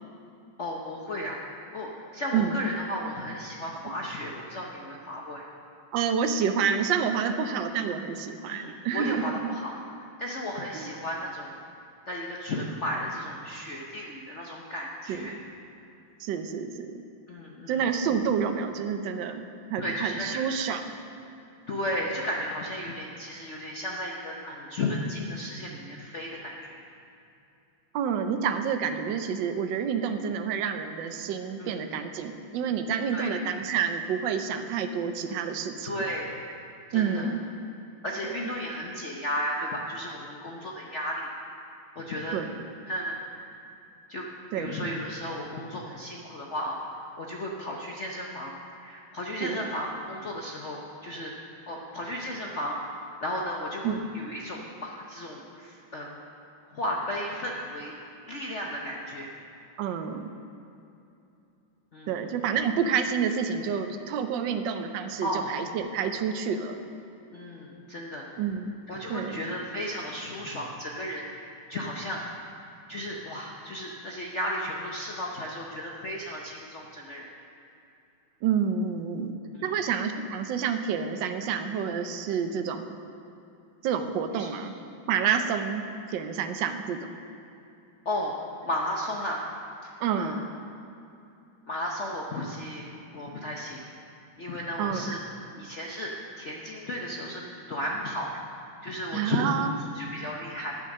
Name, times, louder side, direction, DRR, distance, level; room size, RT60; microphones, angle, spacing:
voice 1, 0.6-1.4 1.7-5.5 8.5-9.7 10.2-11.5 12.1-15.3 17.3-17.8 19.8-20.4 21.7-26.8 31.6-31.8 33.1-33.3 35.8-36.3 36.9-37.3 38.0-41.3 42.0-42.4 42.8-43.6 44.1-44.3 44.5-51.3 51.7-52.8 53.2-56.2 56.7-57.9 58.3-59.3 61.9-62.2 65.2-65.5 67.3-68.3 68.9-72.2 72.9-77.3 79.5-79.8 84.3-84.5 88.0-88.3 88.6-89.4 89.8-90.4 91.7-92.9 93.1-93.8 94.4-95.2 95.6-97.4 97.7-98.3 98.8-99.5 99.9-100.7, left 1 dB, 55° left, -1 dB, 0.8 m, -34 dB
voice 2, 2.3-2.6 3.9-4.0 5.9-9.3 10.7-10.9 15.1-15.3 16.2-17.0 17.7-19.4 19.7-20.8 27.9-35.9 36.9-37.4 38.3-38.4 42.3-42.5 44.5-44.8 49.4-49.7 53.8-54.0 59.8-60.3 62.1-66.8 68.4-68.7 69.1-69.4 78.4-79.4 79.6-83.0 83.8-84.7 85.1-85.8 86.1-87.0 90.0-90.5 94.8-95.2 99.1-99.8, right 7 dB, 70° right, 7 dB, 1.3 m, -28 dB
9.6 x 8.7 x 6.5 m, 2.7 s
omnidirectional pair, 2.3 m